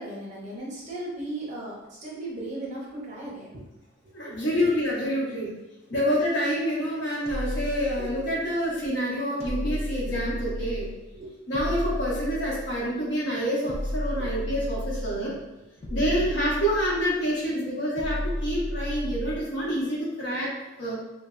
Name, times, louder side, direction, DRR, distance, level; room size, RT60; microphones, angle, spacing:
voice 1, 0.0-3.7 4.0-4.1 4.5-4.7 8.0-8.1 9.5-9.6 10.1-10.2 10.8-10.9 11.1-11.3 14.2-14.3 15.9-16.3, right 1 dB, 35° right, -4 dB, 0.6 m, -37 dB
voice 2, 4.1-5.5 5.9-10.9 11.5-15.3 15.9-20.5 20.8-20.9, equal, 55° left, -6 dB, 0.8 m, -27 dB
sound 1, 7.3-8.6 9.4-11.0 11.5-13.0 13.7-15.3 15.8-17.2 18.0-19.6, left 1 dB, 30° left, 0.3 m, -33 dB
3.1 x 2.0 x 2.3 m, 1.0 s
head